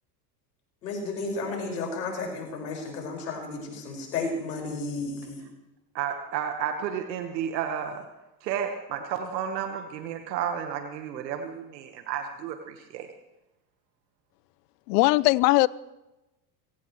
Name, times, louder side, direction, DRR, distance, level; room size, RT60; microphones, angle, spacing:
voice 1, 0.8-5.4, left 3 dB, 90° left, 1 dB, 5.7 m, -33 dB
voice 2, 5.9-8.1 8.4-13.1, right 8 dB, 80° right, 5 dB, 1.6 m, -32 dB
voice 3, 14.9-15.7, left 21 dB, 70° left, 21 dB, 0.7 m, -19 dB
23.0 x 17.0 x 3.2 m, 0.99 s
hypercardioid pair, 90°, 50 cm